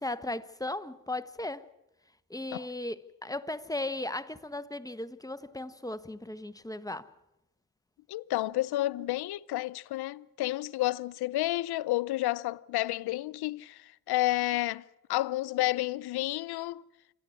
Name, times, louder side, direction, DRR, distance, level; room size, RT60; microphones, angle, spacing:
voice 1, 0.0-1.7 2.3-7.1, left 2 dB, 10° left, 1.2 m, -36 dB
voice 2, 8.1-14.8 15.1-16.8, left 16 dB, 75° left, 0.7 m, -30 dB
28.0 x 11.0 x 9.7 m
supercardioid pair, 60°, 39 cm